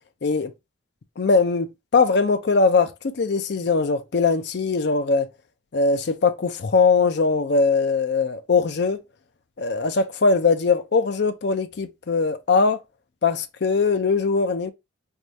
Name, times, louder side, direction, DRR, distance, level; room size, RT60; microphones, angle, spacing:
voice 1, 1.2-2.9 3.2-5.3 5.7-9.0 9.6-12.8 13.2-14.7, left 4 dB, 55° left, 0.5 m, -21 dB
4.6 x 2.3 x 2.6 m
head